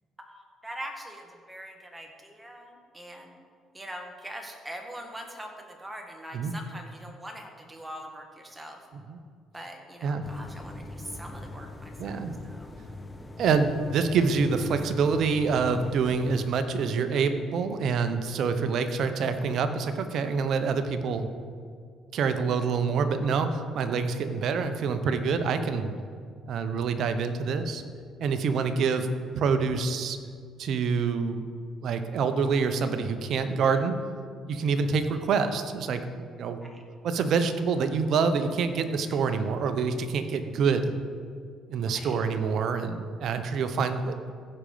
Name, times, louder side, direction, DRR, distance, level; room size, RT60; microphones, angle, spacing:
voice 1, 0.2-3.4 3.7-8.9 9.5-12.7 33.6-33.7 36.6-36.8 41.9-42.2, right 1 dB, 10° right, 2 dB, 1.8 m, -43 dB
sound 1, 10.2-16.5, left 1 dB, 20° left, 0.9 m, -42 dB
voice 2, 12.0-12.3 13.4-21.3 22.1-25.9 26.4-27.8 28.2-29.1 29.3-30.2 30.6-31.4 31.8-33.9 34.5-36.6 37.0-40.9 41.7-44.2, right 5 dB, 65° right, 9 dB, 0.8 m, -26 dB
15.5 x 5.2 x 5.1 m, 2.1 s
cardioid pair, 85°, 0 cm